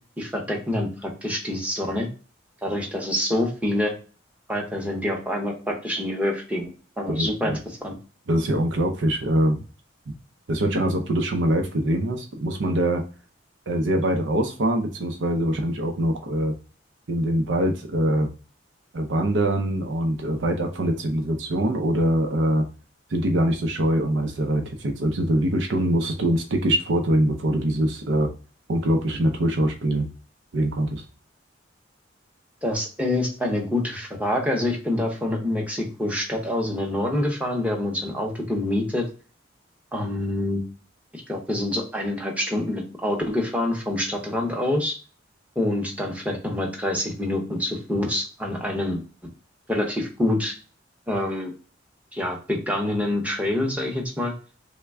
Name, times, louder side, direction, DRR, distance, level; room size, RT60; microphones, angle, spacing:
voice 1, 0.2-2.1 2.6-3.9 4.5-6.7 7.0-7.6 7.8-7.9 32.6-39.1 39.9-40.6 41.3-44.9 45.6-49.0 49.7-50.5 51.1-51.5 52.1-54.3, left 1 dB, 5° right, 0 dB, 0.7 m, -26 dB
voice 2, 7.1-7.6 8.3-9.6 10.1-10.2 10.5-13.0 13.7-16.5 17.1-18.3 18.9-22.7 23.1-28.3 28.7-30.1 30.5-31.0, right 1 dB, 65° right, 3 dB, 0.5 m, -23 dB
3.3 x 2.2 x 3.3 m, 0.36 s
head